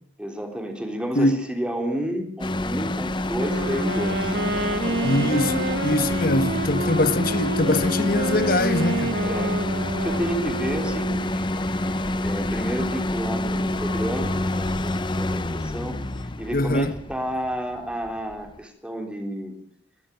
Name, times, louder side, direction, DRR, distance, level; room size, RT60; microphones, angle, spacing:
voice 1, 0.2-4.4 9.2-9.6 10.0-11.4 12.2-19.6, equal, 5° right, 3.6 m, -31 dB
sound 1, 2.4-18.6, left 1 dB, 25° left, 0.7 m, -27 dB
Wind instrument woodwind instrument, 3.3-11.4, right 2 dB, 60° right, 2.3 m, -29 dB
sound 2, 4.1-17.3, left 1 dB, 75° left, 2.3 m, -42 dB
voice 2, 5.0-9.2 16.5-16.9, left 2 dB, 50° left, 1.3 m, -23 dB
22.0 x 13.0 x 9.3 m
head